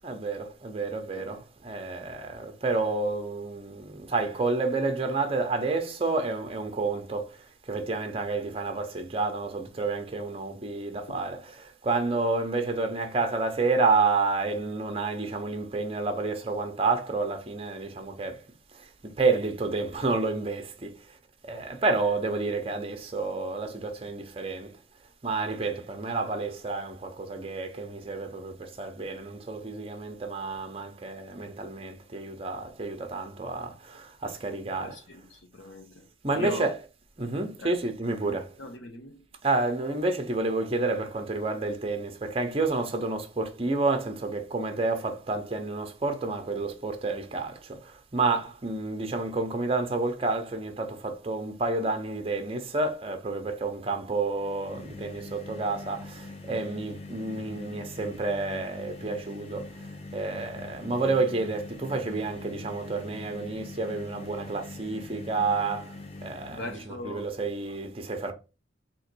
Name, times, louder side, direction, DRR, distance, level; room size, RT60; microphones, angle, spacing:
voice 1, 0.0-18.4 18.7-21.2 21.4-24.7 25.2-35.0 36.2-36.7 37.2-38.5 39.4-59.9 60.1-68.3, right 3 dB, 30° right, 0.7 m, -30 dB
voice 2, 34.6-36.1 36.3-36.7 37.6-37.8 38.2-39.3 66.5-67.3, left 2 dB, 70° left, 0.8 m, -40 dB
sound 1, 54.2-66.8, left 2 dB, 30° left, 0.4 m, -43 dB
3.7 x 2.9 x 4.5 m
head